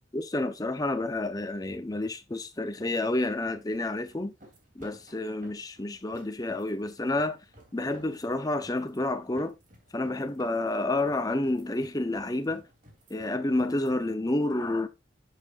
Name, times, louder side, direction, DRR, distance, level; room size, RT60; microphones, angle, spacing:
voice 1, 0.1-4.3 4.8-7.4 7.7-9.5 9.9-12.6 13.1-14.9, left 2 dB, 20° left, 0.7 m, -29 dB
sound 1, 1.5-14.0, right 1 dB, 45° right, 2.9 m, -57 dB
11.0 x 7.5 x 2.5 m
head